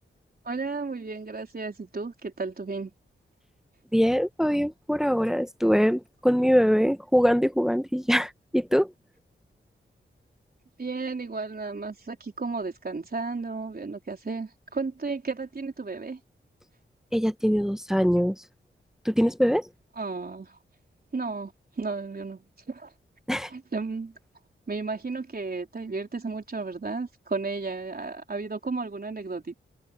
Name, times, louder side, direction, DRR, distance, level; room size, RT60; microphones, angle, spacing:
voice 1, 0.4-2.9 10.8-16.2 20.0-20.6 21.1-21.5 21.8-22.9 23.5-24.2 24.7-29.6, right 4 dB, 45° right, 4.1 m, -33 dB
voice 2, 3.9-8.9 17.1-18.3 19.0-19.7 23.3-23.5, equal, ahead, 1.0 m, -23 dB
cardioid pair, 45°, 21 cm